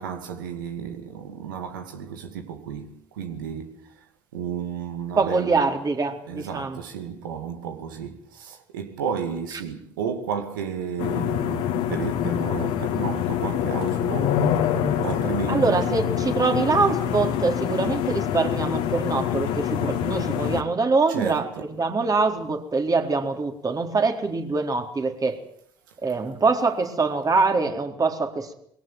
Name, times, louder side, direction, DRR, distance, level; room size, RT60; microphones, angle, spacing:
voice 1, 0.0-4.0 4.3-5.6 6.3-14.5 15.0-16.2 21.1-21.6, right 7 dB, 85° right, 2.3 m, -33 dB
voice 2, 5.2-6.8 15.5-25.4 26.0-28.5, right 4 dB, 35° right, 4.2 m, -24 dB
sound 1, 11.0-20.6, left 9 dB, 75° left, 2.5 m, -25 dB
22.0 x 17.5 x 9.2 m
hypercardioid pair, 50°, 11 cm